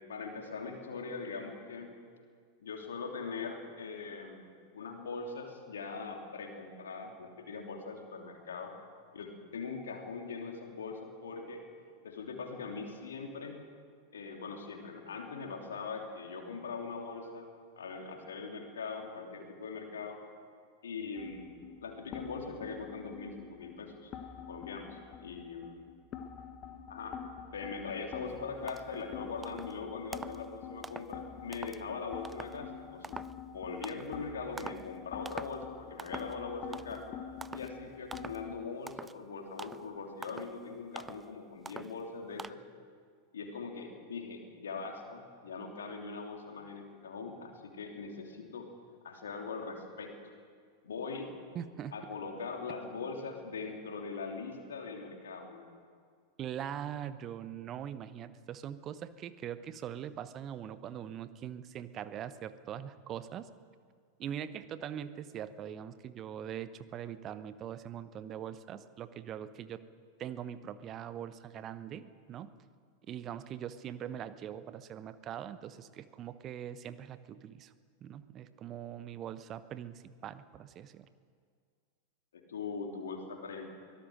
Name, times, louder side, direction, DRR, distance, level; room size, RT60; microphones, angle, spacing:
voice 1, 0.1-1.9 2.6-8.7 9.1-11.6 12.0-13.6 14.1-17.5 17.8-20.2 20.8-24.1 24.5-25.9 26.9-27.2 27.5-33.2 33.5-37.1 37.5-42.6 43.3-48.7 49.0-50.1 50.8-51.3 51.9-55.8 82.3-83.7, left 4 dB, 65° left, 2 dB, 3.1 m, -41 dB
sound 1, 21.2-38.5, left 7 dB, 35° left, 1.5 m, -47 dB
sound 2, 28.3-28.4 28.7-29.1 29.4-29.8 30.1-30.5 30.8-31.1 31.5-31.8 32.2-32.6 33.0-33.4 33.8-34.1 34.6-34.9 35.2-35.6 36.0-36.4 36.7-37.1 37.4-37.7 38.1-38.4 38.9-39.2 39.6-39.9 40.2-40.6 41.0-41.3 41.6-42.0 42.4-42.5, right 3 dB, 10° right, 0.4 m, -45 dB
voice 2, 51.5-51.9 56.4-63.5 64.2-69.8 70.2-72.5 73.1-77.7 78.0-81.1, right 9 dB, 30° right, 14 dB, 0.9 m, -42 dB
23.5 x 17.0 x 6.5 m, 2.1 s
figure-of-eight pair, 90°, 0 cm